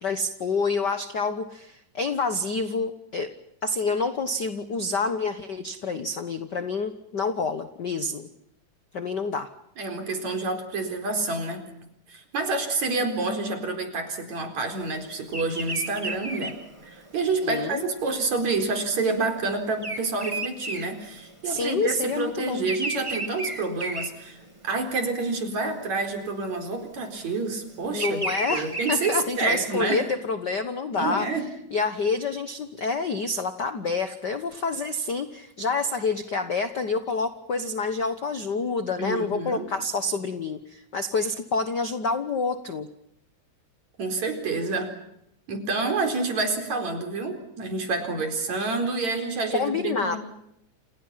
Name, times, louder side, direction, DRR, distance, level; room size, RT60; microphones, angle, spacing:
voice 1, 0.0-3.3 3.6-8.3 8.9-9.5 17.4-17.8 21.4-22.6 27.9-31.3 31.7-42.9 49.5-50.2, left 4 dB, 55° left, 9 dB, 1.2 m, -28 dB
voice 2, 9.8-11.6 12.1-16.6 16.8-30.1 31.0-31.5 39.0-39.7 44.0-44.9 45.5-50.2, right 3 dB, 60° right, 5 dB, 5.4 m, -28 dB
Bird vocalization bird call bird song, 15.3-21.7 22.0-24.8 25.3-25.7 26.6-29.6, right 2 dB, 10° right, 1.9 m, -34 dB
29.0 x 29.0 x 5.8 m, 0.79 s
omnidirectional pair, 3.7 m